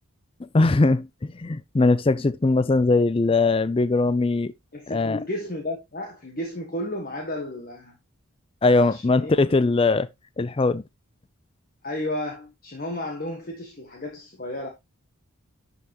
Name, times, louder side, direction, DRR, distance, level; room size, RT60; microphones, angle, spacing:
voice 1, 0.5-4.5 4.9-5.2 8.6-10.1 10.4-10.8, left 3 dB, 25° left, 0.3 m, -20 dB
voice 2, 4.7-7.9 8.6-9.4 11.8-14.7, left 1 dB, 40° left, 1.4 m, -33 dB
11.0 x 5.5 x 2.9 m
head